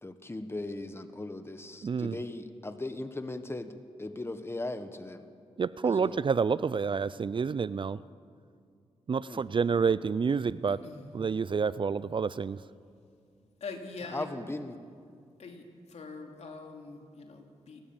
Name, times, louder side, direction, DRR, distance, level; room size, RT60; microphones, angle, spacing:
voice 1, 0.0-5.3 5.8-6.2 9.3-9.5 14.0-14.8, left 2 dB, 20° left, 9 dB, 1.4 m, -38 dB
voice 2, 1.8-2.2 5.6-8.0 9.1-10.8 11.1-12.6, right 5 dB, 45° right, 18 dB, 0.5 m, -28 dB
voice 3, 10.7-11.1 13.6-14.3 15.4-15.6 15.9-17.8, left 4 dB, 65° left, 3 dB, 2.9 m, -43 dB
29.5 x 12.5 x 7.3 m, 2.3 s
cardioid pair, 50°, 12 cm